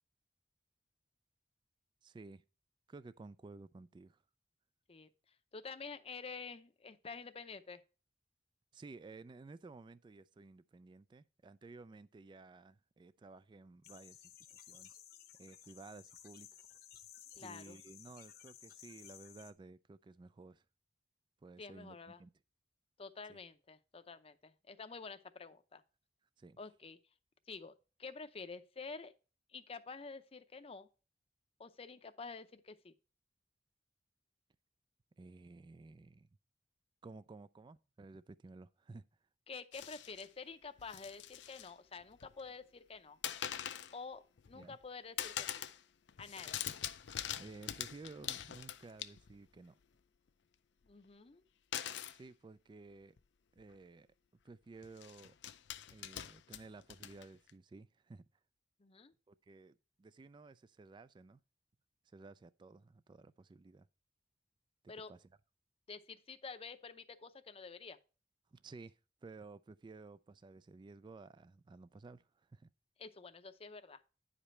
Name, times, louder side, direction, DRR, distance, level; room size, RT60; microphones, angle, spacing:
voice 1, 2.0-2.4 2.9-4.2 8.7-14.9 15.4-16.6 17.4-20.6 21.4-22.3 23.3-23.4 26.4-26.6 35.2-36.3 37.0-39.0 44.5-44.8 47.4-49.7 52.1-53.2 53.6-54.1 54.4-55.3 55.9-58.3 59.3-61.4 62.1-63.9 64.8-65.2 68.5-72.7, right 3 dB, 25° right, 0.3 m, -54 dB
voice 2, 5.5-7.8 17.4-17.8 21.6-22.2 23.0-25.8 26.6-27.0 27.5-29.1 29.5-30.9 31.6-32.9 39.5-43.2 43.9-45.5 46.2-46.6 50.8-51.4 58.8-59.1 64.9-65.1 65.9-68.0 73.0-74.0, left 4 dB, 35° left, 0.6 m, -49 dB
sound 1, 13.8-19.5, left 10 dB, 60° left, 0.9 m, -56 dB
sound 2, 39.7-40.3 40.8-41.7 42.0-42.6 43.2-44.0 44.4-44.9 45.2-45.8 46.1-49.5 51.7-52.2 53.2-53.3 53.6-53.8 54.8-57.5, left 11 dB, 75° left, 0.5 m, -43 dB
9.6 x 5.1 x 4.2 m
head